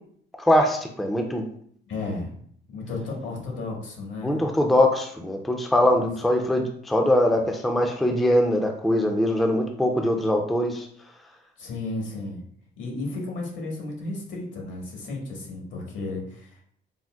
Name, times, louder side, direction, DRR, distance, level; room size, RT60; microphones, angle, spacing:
voice 1, 0.4-1.4 4.2-10.9, left 1 dB, ahead, 3 dB, 0.3 m, -22 dB
voice 2, 1.9-2.3 2.7-4.4 5.9-6.0 11.6-12.4 12.8-16.6, left 2 dB, 75° left, -1 dB, 1.1 m, -33 dB
3.7 x 2.0 x 2.3 m, 0.63 s
cardioid pair, 90°, 20 cm